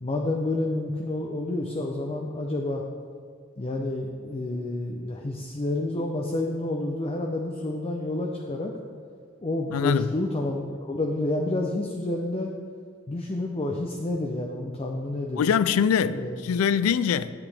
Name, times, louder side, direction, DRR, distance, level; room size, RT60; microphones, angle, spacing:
voice 1, 0.0-2.8 3.6-8.7 9.4-12.5 13.1-15.4 16.1-16.4, left 2 dB, 30° left, 0.6 m, -29 dB
voice 2, 9.7-10.1 15.3-17.3, left 7 dB, 90° left, 0.3 m, -23 dB
10.0 x 8.4 x 3.4 m
head